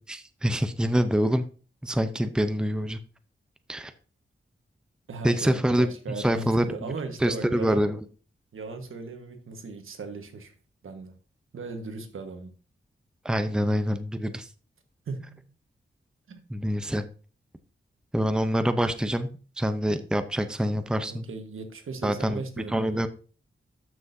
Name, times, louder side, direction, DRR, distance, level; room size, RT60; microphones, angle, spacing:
voice 1, 0.1-1.4 1.8-3.0 3.7-3.9 5.2-5.9 6.2-6.9 7.2-8.0 13.2-14.5 16.5-17.0 18.1-21.3 22.0-23.1, equal, 5° right, 0.6 m, -26 dB
voice 2, 5.1-7.8 8.5-10.5 10.8-11.2 11.5-12.5 15.1-15.4 16.3-16.4 21.1-23.0, right 4 dB, 80° right, 1.4 m, -37 dB
12.5 x 6.2 x 2.7 m
wide cardioid pair, 105°, 21 cm